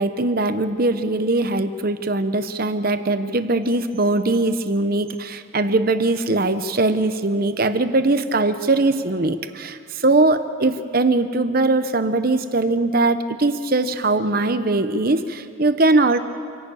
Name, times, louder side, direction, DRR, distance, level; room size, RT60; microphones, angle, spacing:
voice 1, 0.0-16.2, right 2 dB, 45° right, 10 dB, 0.9 m, -21 dB
27.0 x 11.5 x 8.6 m, 2.4 s
head